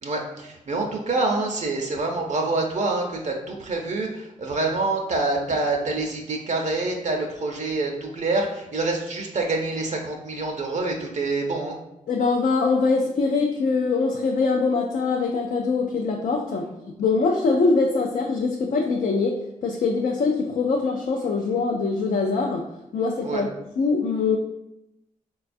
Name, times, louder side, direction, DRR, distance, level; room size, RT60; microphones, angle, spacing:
voice 1, 0.0-11.8 23.2-23.4, right 2 dB, 60° right, 2 dB, 0.5 m, -26 dB
voice 2, 12.1-23.5 23.8-24.4, left 4 dB, 70° left, 2 dB, 0.4 m, -23 dB
3.9 x 2.3 x 2.5 m, 0.85 s
cardioid pair, 65°, 14 cm